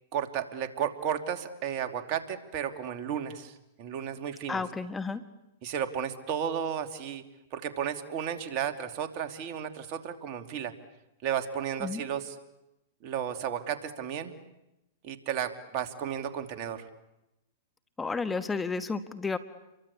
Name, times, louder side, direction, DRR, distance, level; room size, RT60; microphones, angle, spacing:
voice 1, 0.1-4.6 5.6-7.2 7.5-10.7 11.2-12.4 13.0-14.3 15.0-16.9, right 9 dB, 45° right, 6 dB, 2.8 m, -33 dB
voice 2, 4.5-5.2 11.8-12.0 18.0-19.4, left 4 dB, 10° left, 10 dB, 1.3 m, -32 dB
29.5 x 23.5 x 8.5 m, 0.92 s
hypercardioid pair, 115°, 0 cm